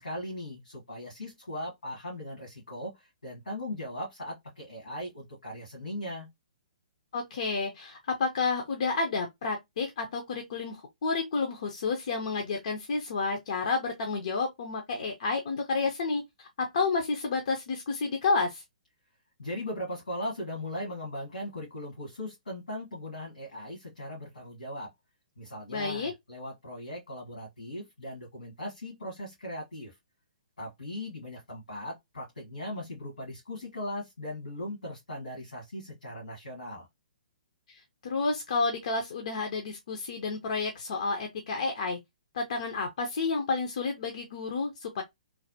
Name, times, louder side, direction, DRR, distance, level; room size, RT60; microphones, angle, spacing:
voice 1, 0.0-6.3 19.4-24.9 25.4-29.9 30.6-36.9, left 1 dB, 80° left, 1.5 m, -39 dB
voice 2, 7.1-18.6 25.7-26.1 37.7-42.0 42.3-45.0, left 4 dB, 55° left, 0.6 m, -30 dB
3.2 x 2.1 x 2.7 m
figure-of-eight pair, 125°, 4 cm